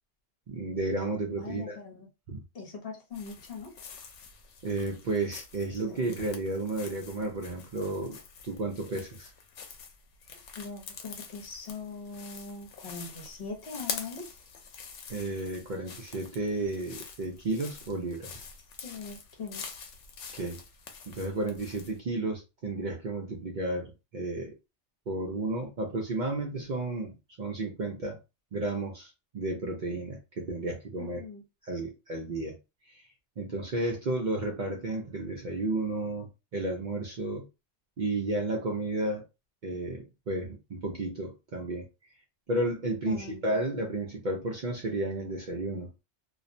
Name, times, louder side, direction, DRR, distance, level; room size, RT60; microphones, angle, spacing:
voice 1, 0.5-1.8 2.3-2.4 4.6-9.3 15.1-18.5 20.3-20.6 21.1-24.5 25.1-28.2 28.5-31.2 31.6-32.6 32.9-33.1 33.4-37.4 38.0-39.2 39.6-41.9 42.5-45.9, right 2 dB, 55° right, 0.6 m, -32 dB
voice 2, 1.4-2.1 2.5-3.7 5.7-6.0 10.6-14.3 18.8-19.8 31.0-31.4 43.1-43.5, left 4 dB, 60° left, 1.0 m, -41 dB
sound 1, 3.1-22.0, left 6 dB, 85° left, 0.9 m, -45 dB
2.4 x 2.0 x 2.5 m
omnidirectional pair, 1.2 m